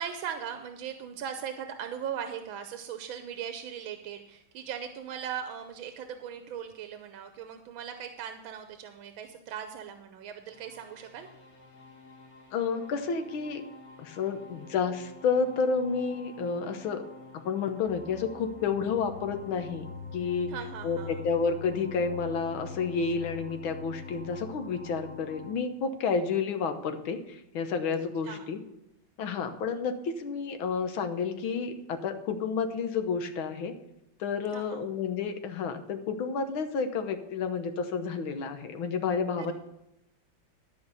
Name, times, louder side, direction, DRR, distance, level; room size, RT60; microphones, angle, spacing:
voice 1, 0.0-11.3 20.5-21.2 28.2-28.5 34.5-34.8 39.4-39.5, right 8 dB, 90° right, 7 dB, 1.6 m, -39 dB
sound 1, 10.4-25.5, left 1 dB, 35° left, 1.8 m, -50 dB
voice 2, 12.5-13.6 14.0-17.0 17.3-19.9 20.1-20.5 20.8-28.6 29.2-33.7 34.2-39.5, left 5 dB, 90° left, 7 dB, 1.8 m, -30 dB
sound 2, 17.9-25.6, left 6 dB, 50° right, 1.1 m, -44 dB
12.5 x 5.4 x 6.9 m, 0.90 s
omnidirectional pair, 2.2 m